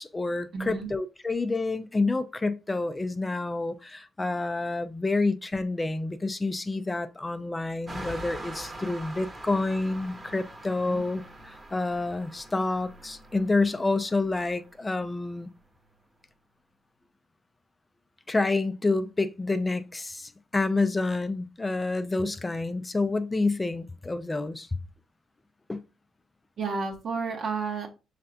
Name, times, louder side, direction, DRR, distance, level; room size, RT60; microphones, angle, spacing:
voice 1, 0.0-11.2 11.7-15.5 18.3-24.7 25.7-25.8, left 3 dB, 20° left, 0.4 m, -28 dB
voice 2, 0.5-0.9 10.8-11.0 26.6-27.9, right 4 dB, 55° right, 0.8 m, -31 dB
sound 1, 7.9-15.9, right 1 dB, 20° right, 0.8 m, -44 dB
5.5 x 3.3 x 2.5 m
cardioid pair, 90°, 0 cm